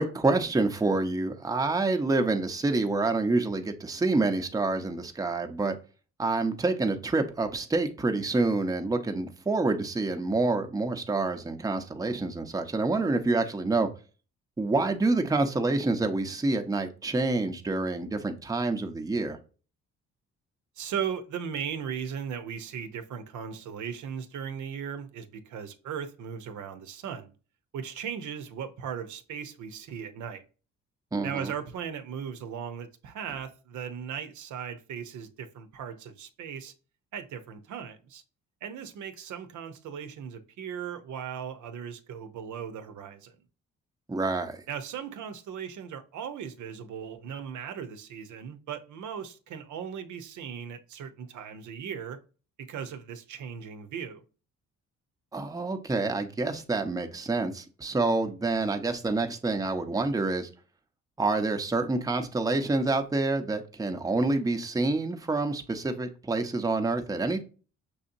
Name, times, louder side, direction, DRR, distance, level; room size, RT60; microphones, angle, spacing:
voice 1, 0.0-5.8 6.2-13.9 14.6-19.4 31.1-31.5 44.1-44.6 55.3-60.5 61.2-67.4, right 3 dB, 10° right, 0.7 m, -27 dB
voice 2, 20.8-27.3 27.7-30.4 31.2-36.7 37.1-38.2 38.6-43.4 44.7-52.2 52.6-54.2, right 7 dB, 75° right, 0.7 m, -37 dB
6.2 x 2.8 x 2.6 m
cardioid pair, 90°, 30 cm